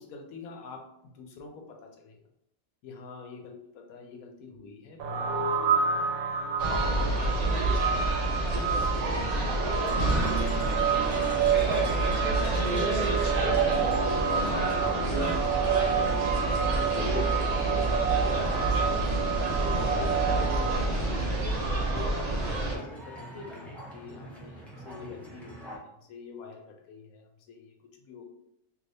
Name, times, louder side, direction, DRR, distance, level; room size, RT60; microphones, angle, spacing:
voice 1, 0.0-2.2 2.8-6.1 6.6-7.8 8.2-13.8 14.2-16.6 16.9-21.3 21.9-28.3, left 4 dB, 85° left, 4 dB, 1.1 m, -44 dB
sound 1, 5.0-20.8, right 6 dB, 80° right, 1.0 m, -29 dB
sound 2, 6.6-22.7, right 2 dB, 60° right, 0.4 m, -28 dB
sound 3, 9.8-25.8, right 1 dB, ahead, 0.4 m, -45 dB
3.2 x 2.7 x 2.6 m, 0.81 s
omnidirectional pair, 1.5 m